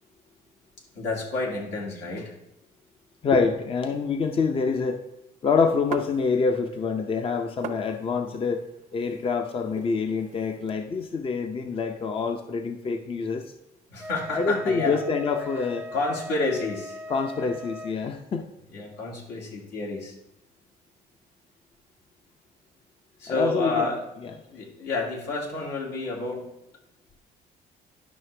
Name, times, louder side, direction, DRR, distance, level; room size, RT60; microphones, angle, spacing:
voice 1, 0.9-2.3 13.9-15.0 15.9-17.0 18.7-20.1 23.2-24.0 24.5-26.5, left 3 dB, 85° left, -3 dB, 2.5 m, -29 dB
voice 2, 3.2-5.0 5.4-8.7 8.9-13.4 14.3-15.9 17.1-18.5 23.3-23.8, left 5 dB, 35° left, 6 dB, 0.6 m, -26 dB
sound 1, 5.9-6.8 7.0-10.7, right 8 dB, 50° right, 0.7 m, -41 dB
Wind instrument woodwind instrument, 14.0-18.0, left 1 dB, 10° right, 0.7 m, -39 dB
11.0 x 5.7 x 3.3 m, 0.86 s
cardioid pair, 110°, 17 cm